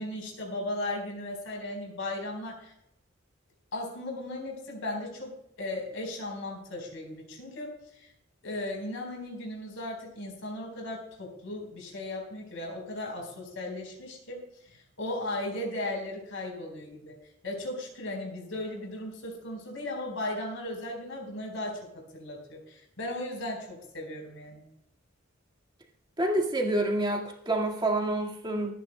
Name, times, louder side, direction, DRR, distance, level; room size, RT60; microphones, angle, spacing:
voice 1, 0.0-2.7 3.7-8.1 8.4-17.2 17.4-24.6, left 1 dB, 70° left, 1 dB, 4.3 m, -36 dB
voice 2, 26.2-28.7, right 1 dB, 20° right, 1 dB, 1.8 m, -28 dB
24.5 x 9.2 x 2.2 m, 0.77 s
head